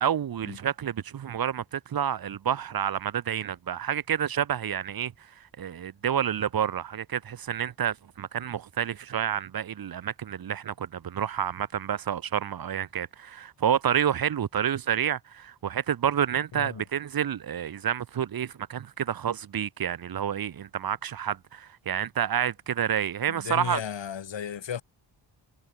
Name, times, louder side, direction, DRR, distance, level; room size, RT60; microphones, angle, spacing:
voice 1, 0.0-5.1 5.6-23.8, right 9 dB, 50° right, 0.8 m, -29 dB
voice 2, 16.5-16.8 23.3-24.8, left 8 dB, 75° left, 2.6 m, -35 dB
wide cardioid pair, 135°, 45 cm